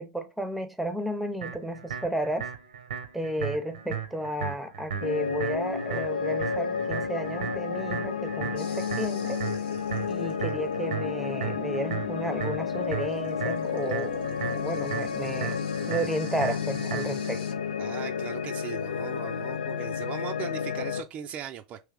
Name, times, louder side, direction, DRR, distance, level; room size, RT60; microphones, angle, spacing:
voice 1, 0.0-2.5 3.1-9.4 10.1-15.6 15.9-17.4, right 1 dB, ahead, 0.7 m, -33 dB
sound 1, 1.4-17.4, right 8 dB, 75° right, 0.7 m, -36 dB
sound 2, 5.0-21.0, left 6 dB, 80° left, 0.4 m, -31 dB
sound 3, 8.6-17.5, left 7 dB, 30° left, 0.8 m, -45 dB
voice 2, 17.8-21.8, right 10 dB, 35° right, 0.4 m, -39 dB
3.4 x 3.1 x 3.3 m
hypercardioid pair, 95°, 4 cm